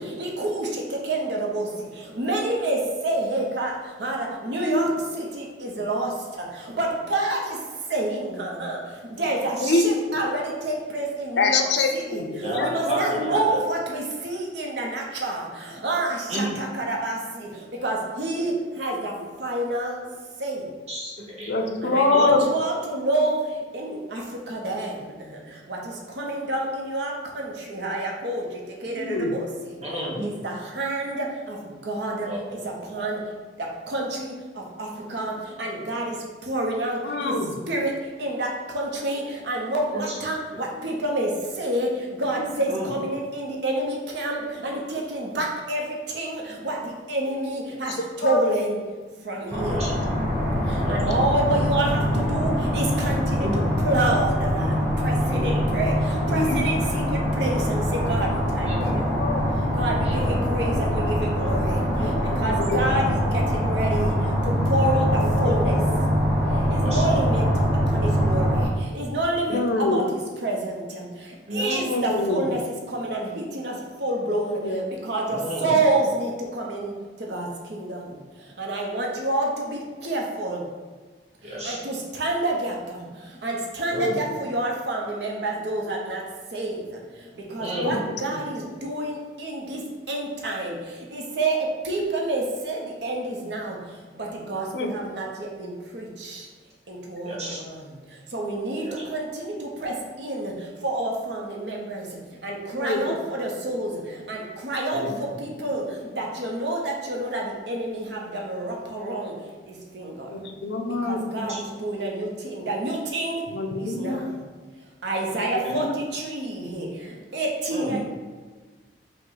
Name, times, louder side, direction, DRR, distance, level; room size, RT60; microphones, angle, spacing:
voice 1, 0.2-1.7 2.2-3.7 4.0-6.1 6.7-7.6 7.9-8.8 9.2-11.6 11.9-12.2 12.6-15.5 15.8-17.2 17.8-19.1 19.4-20.0 20.4-20.6 21.8-23.4 23.7-24.2 24.5-24.9 25.7-25.8 26.2-28.4 28.8-29.5 30.2-31.6 31.8-32.3 32.9-33.2 33.9-34.3 34.8-35.3 35.6-36.1 36.5-37.3 37.7-37.9 38.2-38.5 38.7-41.3 41.6-41.9 42.2-44.4 44.6-46.8 47.1-47.9 48.2-48.8 49.3-49.9 50.9-54.7 55.0-55.9 56.3-59.0 59.7-61.8 62.4-64.1 64.7-65.8 66.7-67.4 67.9-68.6 68.9-71.0 71.5-72.6 72.9-73.7 74.0-74.6 75.0-76.9 77.3-78.0 78.6-80.6 81.6-82.7 83.4-86.2 86.5-86.7 87.5-89.8 90.1-90.7 91.1-93.7 94.2-96.4 96.9-97.5 98.3-99.5 99.8-100.5 100.8-102.0 102.4-103.9 104.3-105.0 105.4-105.8 106.2-109.3 109.9-110.1 111.1-113.4 114.0-114.2 115.0-115.9 116.1-116.9 117.3-118.0, right 2 dB, 70° right, 0 dB, 0.7 m, -28 dB
voice 2, 9.6-9.9 11.4-13.0 21.5-22.5 28.9-29.4 37.0-37.6 42.4-42.5 48.2-48.4 56.3-56.6 59.1-59.4 62.3-62.4 62.7-62.8 65.9-66.0 69.5-70.0 71.6-72.5 74.3-74.9 84.0-84.1 87.7-88.0 88.3-88.4 94.7-94.9 102.8-103.2 110.3-111.2 113.5-114.2 115.5-115.9, left 3 dB, 70° left, 4 dB, 0.5 m, -25 dB
voice 3, 12.4-13.6 16.3-16.6 20.9-21.5 22.1-22.4 29.8-30.3 32.2-32.7 33.0-33.1 39.9-40.1 42.7-42.9 49.7-49.9 50.8-51.0 53.4-53.6 55.2-55.8 58.6-59.1 60.0-60.4 62.5-62.9 66.8-67.2 69.5-69.6 71.5-72.0 75.3-75.8 81.4-81.8 83.9-84.2 87.6-88.0 97.2-97.6 98.8-99.0 104.9-105.1 111.4-111.6 115.6-115.8 117.7-118.0, right 1 dB, 35° right, -5 dB, 1.1 m, -32 dB
sound 1, 49.5-68.7, equal, 10° right, 1.3 m, -23 dB
5.4 x 2.1 x 3.9 m, 1.4 s
head